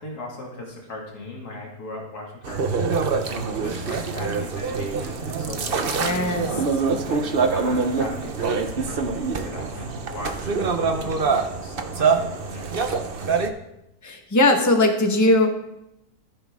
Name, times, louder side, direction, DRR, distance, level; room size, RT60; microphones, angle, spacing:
voice 1, 0.0-3.2 3.5-6.5 7.1-13.4, left 2 dB, 85° left, -2 dB, 2.8 m, -38 dB
sound 1, 2.4-13.5, right 4 dB, 45° right, 1.0 m, -25 dB
voice 2, 6.0-6.5 14.0-15.5, left 1 dB, 10° left, 3 dB, 1.3 m, -19 dB
14.5 x 10.5 x 3.7 m, 0.86 s
omnidirectional pair, 1.6 m